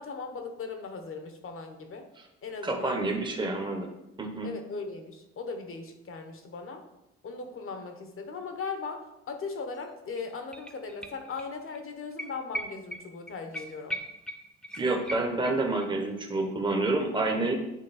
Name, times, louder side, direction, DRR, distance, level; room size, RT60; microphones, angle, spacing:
voice 1, 0.0-2.1 2.4-3.1 3.6-3.7 4.4-6.8 7.2-9.0 9.3-14.0, left 4 dB, 45° left, 5 dB, 1.0 m, -38 dB
voice 2, 2.6-3.9 4.2-4.5 14.8-17.5, right 2 dB, 15° right, 1 dB, 1.0 m, -28 dB
sound 1, 9.7-9.8 10.1-11.5 11.7-11.8 12.2-15.9 16.2-16.3, equal, 5° left, 0.6 m, -39 dB
8.2 x 3.1 x 4.2 m, 0.89 s
cardioid pair, 90°, 30 cm